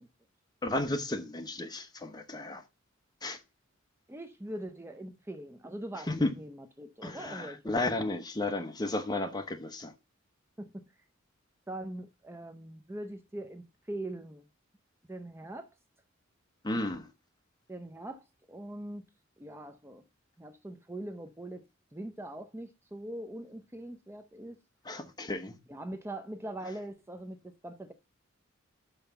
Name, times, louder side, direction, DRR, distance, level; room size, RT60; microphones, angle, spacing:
voice 1, 0.6-2.6 3.2-3.4 6.1-6.3 7.0-9.9 16.6-17.0 24.9-25.5, left 2 dB, 20° left, 1.0 m, -33 dB
voice 2, 4.1-7.7 9.2-9.3 10.6-10.8 11.7-14.5 15.1-15.7 17.7-19.1 19.4-20.0 20.4-21.6 21.9-24.6 25.7-27.9, right 1 dB, 10° right, 0.6 m, -42 dB
5.7 x 5.5 x 6.9 m
head